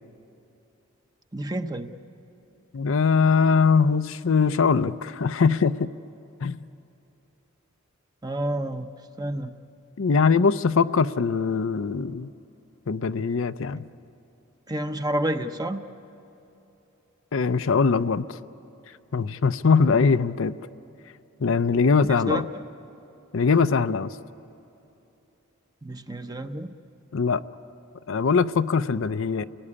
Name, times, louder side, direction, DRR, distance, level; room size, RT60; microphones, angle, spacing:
voice 1, 1.3-1.9 8.2-8.9 9.2-9.5 13.7-13.8 14.7-15.8 22.1-22.4 25.8-26.7, right 1 dB, 20° right, 8 dB, 0.8 m, -29 dB
voice 2, 2.7-5.9 6.4-6.6 10.0-12.3 12.9-13.8 17.3-18.4 19.1-20.5 21.4-22.4 23.3-24.1 27.1-27.4 28.1-29.4, left 5 dB, 65° left, 12 dB, 0.5 m, -22 dB
29.5 x 19.0 x 9.8 m, 2.9 s
head